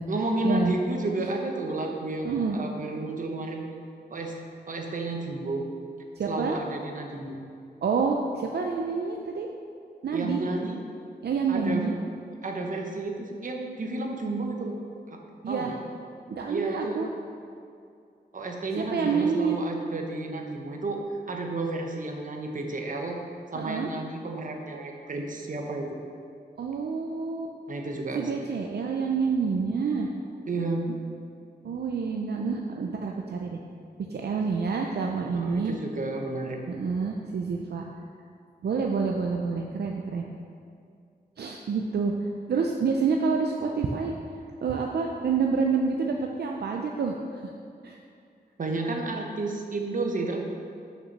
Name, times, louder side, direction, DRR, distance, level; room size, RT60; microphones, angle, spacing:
voice 1, 0.1-3.6 4.1-4.3 4.7-5.6 6.3-7.4 10.1-10.8 11.5-11.8 12.4-14.8 15.1-15.2 15.5-15.7 16.5-17.0 18.3-23.2 23.5-25.9 27.7-28.3 30.5-30.9 35.3-36.6 48.6-50.4, right 2 dB, 50° right, 1 dB, 1.1 m, -31 dB
voice 2, 2.2-2.6 6.2-6.6 7.8-9.5 10.0-10.4 11.2-11.9 15.4-15.7 16.3-17.1 18.8-19.6 23.6-23.9 26.6-27.5 28.2-30.1 30.9-31.0 31.6-33.6 34.1-35.7 36.7-37.8 38.6-40.2 41.4-42.1 42.5-44.1 44.6-47.4 47.8-48.0, right 5 dB, 75° right, 1 dB, 0.6 m, -28 dB
6.7 x 5.9 x 6.0 m, 2.4 s
wide cardioid pair, 130°, 17 cm